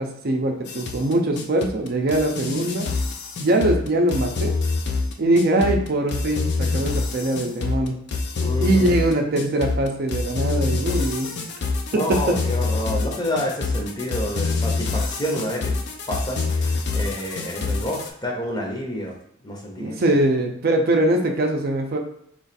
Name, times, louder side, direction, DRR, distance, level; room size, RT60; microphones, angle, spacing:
voice 1, 0.0-2.9 3.4-4.5 5.2-8.0 8.6-11.3 11.9-12.4 19.8-22.0, right 1 dB, 50° right, 3 dB, 0.5 m, -22 dB
sound 1, 0.7-18.1, left 3 dB, 60° left, 0.5 m, -26 dB
voice 2, 8.4-8.9 11.9-15.8 16.1-19.2 19.4-20.0, equal, 20° left, 0 dB, 0.7 m, -29 dB
3.1 x 2.4 x 4.1 m, 0.72 s
head